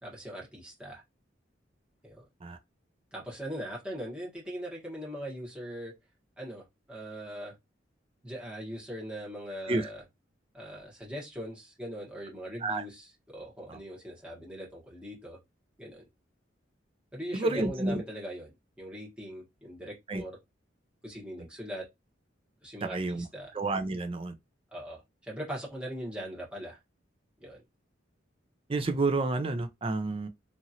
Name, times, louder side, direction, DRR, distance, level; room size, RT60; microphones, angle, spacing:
voice 1, 0.0-1.0 2.0-2.3 3.1-5.9 6.4-7.6 8.2-10.0 10.5-15.4 15.8-16.1 17.1-18.5 18.8-20.3 21.0-21.8 22.6-23.5 24.7-26.8 27.4-27.6, equal, 5° right, 1.4 m, -40 dB
voice 2, 17.3-18.0 20.1-20.2 22.9-23.3 23.5-24.3 28.7-30.3, right 2 dB, 30° right, 0.5 m, -30 dB
2.8 x 2.5 x 2.8 m
head